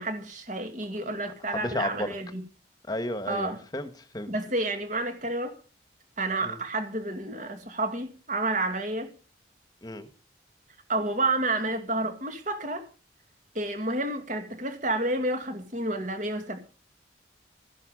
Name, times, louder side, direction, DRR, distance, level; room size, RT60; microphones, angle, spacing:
voice 1, 0.0-2.4 3.3-3.6 4.3-5.6 6.2-9.1 10.9-12.9 13.5-16.6, right 2 dB, 45° right, 2.3 m, -30 dB
voice 2, 1.5-2.1 2.9-3.9 4.1-4.3 6.4-6.6 9.8-10.1, left 1 dB, 20° left, 1.4 m, -32 dB
13.5 x 11.0 x 5.3 m
head